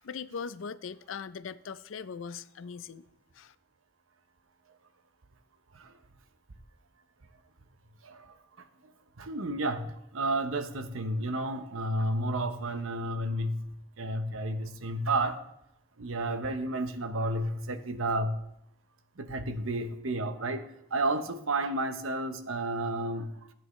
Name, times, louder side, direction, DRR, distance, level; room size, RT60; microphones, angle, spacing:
voice 1, 0.0-3.0 3.3-3.6, left 6 dB, 75° left, 0.5 m, -40 dB
voice 2, 8.0-8.4 9.2-15.4 16.0-18.4 19.2-23.3, right 1 dB, 90° right, 0.9 m, -31 dB
16.0 x 8.9 x 3.2 m
head